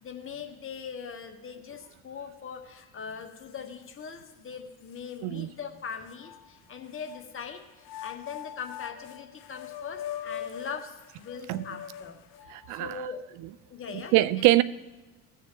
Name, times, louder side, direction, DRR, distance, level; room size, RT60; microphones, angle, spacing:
voice 1, 0.0-12.2 12.7-13.2 13.7-14.4, left 6 dB, 30° left, 1.3 m, -41 dB
sound 1, 2.8-2.9 3.3-4.3 4.9-5.0 6.1-7.2 7.8-12.7, left 10 dB, 45° left, 0.7 m, -42 dB
voice 2, 12.5-13.0 13.9-14.6, right 17 dB, 45° right, 0.4 m, -23 dB
15.5 x 7.1 x 3.0 m
figure-of-eight pair, 55°, 44 cm